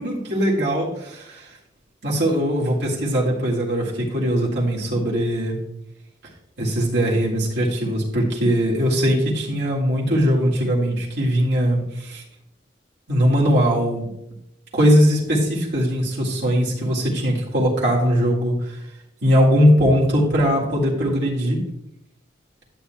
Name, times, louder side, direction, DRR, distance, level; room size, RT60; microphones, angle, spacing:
voice 1, 0.0-1.4 2.0-5.6 6.6-12.2 13.1-14.1 14.7-18.5 19.2-21.6, equal, 70° right, -4 dB, 2.0 m, -20 dB
11.5 x 7.5 x 2.3 m, 0.85 s
head